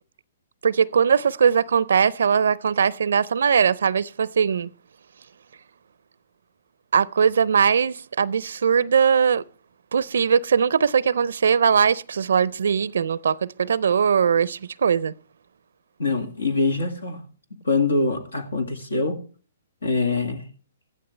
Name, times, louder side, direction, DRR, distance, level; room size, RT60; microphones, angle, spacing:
voice 1, 0.6-4.7 6.9-9.4 9.9-15.1, right 7 dB, 75° right, 0.4 m, -20 dB
voice 2, 16.0-17.2 17.6-19.2 19.8-20.4, left 3 dB, 85° left, 2.1 m, -24 dB
14.5 x 12.5 x 3.2 m
hypercardioid pair, 130°, 0 cm